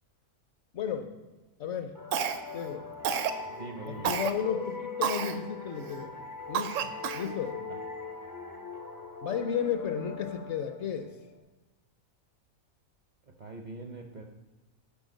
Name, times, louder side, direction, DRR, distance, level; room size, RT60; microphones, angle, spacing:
voice 1, 0.7-1.1 1.6-1.9 2.5-2.9 3.9-6.1 6.5-6.8 7.1-7.6 9.2-11.1, left 7 dB, 60° left, 8 dB, 0.9 m, -33 dB
sound 1, 1.9-11.4, left 4 dB, 30° left, 0.3 m, -41 dB
Cough, 2.1-2.6 3.0-3.4 4.0-4.3 5.0-5.4 5.9-6.0 6.5-7.3, right 8 dB, 70° right, 0.9 m, -30 dB
voice 2, 3.5-4.1 13.4-14.2, right 2 dB, 50° right, 3 dB, 0.6 m, -42 dB
11.0 x 4.3 x 5.1 m, 1.1 s
omnidirectional pair, 1.5 m